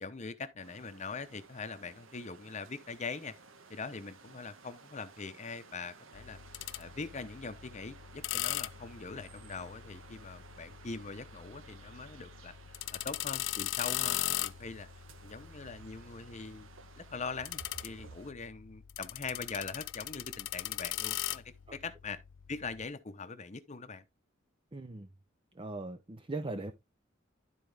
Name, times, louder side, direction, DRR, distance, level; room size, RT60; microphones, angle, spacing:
voice 1, 0.0-3.3 3.7-6.4 6.8-12.5 12.9-14.9 15.2-16.7 17.0-22.2 22.5-24.0, left 4 dB, 35° left, 0.8 m, -42 dB
sound 1, 0.6-18.3, right 4 dB, 90° right, 1.1 m, -56 dB
sound 2, 6.1-22.9, left 15 dB, 65° left, 0.4 m, -40 dB
voice 2, 24.7-25.1 25.5-26.7, right 2 dB, 25° right, 0.7 m, -39 dB
12.0 x 4.5 x 3.4 m
head